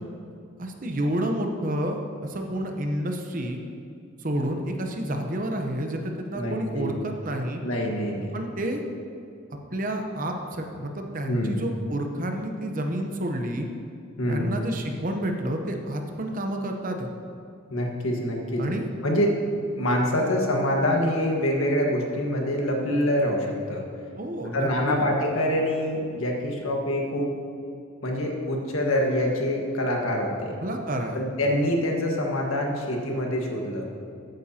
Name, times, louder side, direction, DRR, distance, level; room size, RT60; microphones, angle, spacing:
voice 1, 0.6-3.6 4.2-7.6 8.3-8.8 9.7-13.7 14.3-17.1 18.6-18.9 24.2-25.1 30.6-31.2, right 1 dB, 40° right, 3 dB, 0.8 m, -29 dB
voice 2, 6.3-7.0 7.6-8.4 11.3-11.6 14.2-14.5 17.7-18.7 19.0-19.4 19.7-23.8 24.5-27.3 28.0-30.6 31.1-33.9, left 1 dB, 75° left, 0 dB, 1.5 m, -25 dB
14.5 x 9.0 x 2.9 m, 2.5 s
head